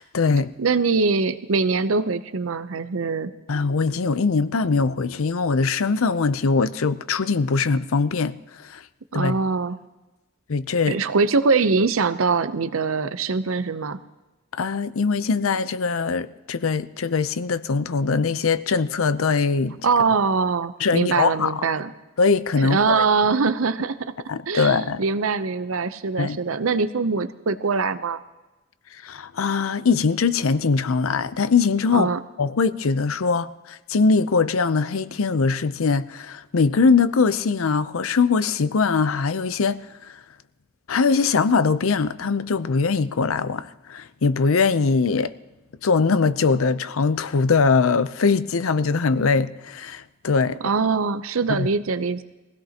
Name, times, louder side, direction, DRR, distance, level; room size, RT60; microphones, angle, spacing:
voice 1, 0.0-0.5 3.5-8.3 8.7-8.8 9.1-9.4 10.5-11.0 14.5-19.8 20.8-21.5 22.2-23.0 24.3-25.0 26.2-26.4 29.0-32.1 32.4-39.8 40.9-45.3 45.8-50.6 51.5-51.7, left 4 dB, 75° left, 0.6 m, -21 dB
voice 2, 0.6-3.3 9.1-9.8 10.9-14.0 19.8-21.9 22.6-24.1 24.5-28.2 31.9-32.2 50.6-52.2, right 4 dB, 75° right, 0.7 m, -23 dB
22.0 x 16.5 x 2.9 m
head